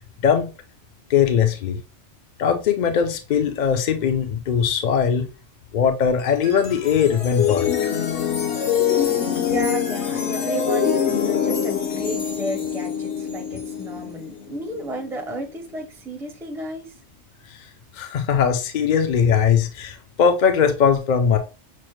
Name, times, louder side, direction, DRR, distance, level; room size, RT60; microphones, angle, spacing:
voice 1, 1.1-1.8 2.4-5.3 5.7-7.7 18.0-21.4, left 7 dB, 55° left, 0.6 m, -20 dB
sound 1, 6.2-15.5, left 8 dB, 70° left, 1.0 m, -24 dB
voice 2, 9.4-16.9, right 1 dB, 5° right, 0.5 m, -33 dB
6.0 x 2.1 x 3.0 m
omnidirectional pair, 1.2 m